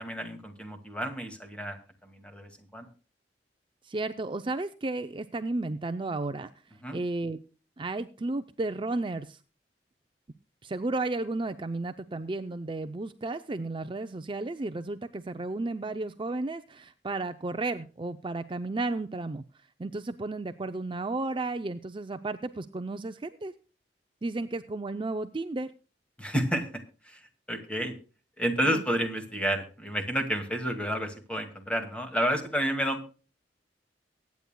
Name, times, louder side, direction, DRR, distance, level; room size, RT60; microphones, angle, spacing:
voice 1, 0.0-2.9 6.8-7.0 26.2-27.2 27.5-28.0 28.4-33.1, equal, 5° left, 5 dB, 2.1 m, -30 dB
voice 2, 3.8-7.4 7.8-9.4 10.6-19.4 19.8-23.5 24.2-25.7 28.6-28.8, right 2 dB, 30° right, 9 dB, 0.5 m, -33 dB
23.5 x 9.4 x 2.2 m, 0.36 s
head